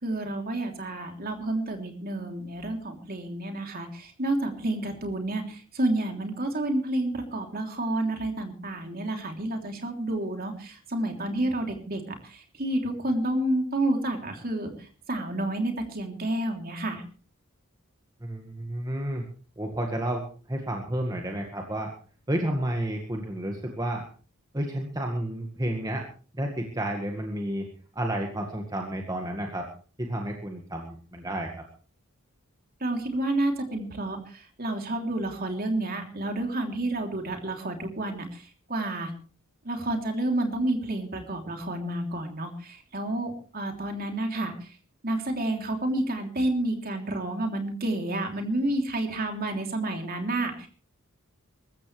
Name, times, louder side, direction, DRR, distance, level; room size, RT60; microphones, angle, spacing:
voice 1, 0.0-17.0 32.8-39.1 39.6-44.7 45.0-50.7, right 1 dB, 40° right, 4 dB, 3.2 m, -30 dB
voice 2, 18.2-19.2 19.6-21.9 22.3-24.0 24.5-26.1 26.3-27.7 27.9-29.7 30.0-31.7, right 1 dB, 15° right, 2 dB, 1.8 m, -31 dB
23.5 x 13.5 x 3.3 m, 0.39 s
head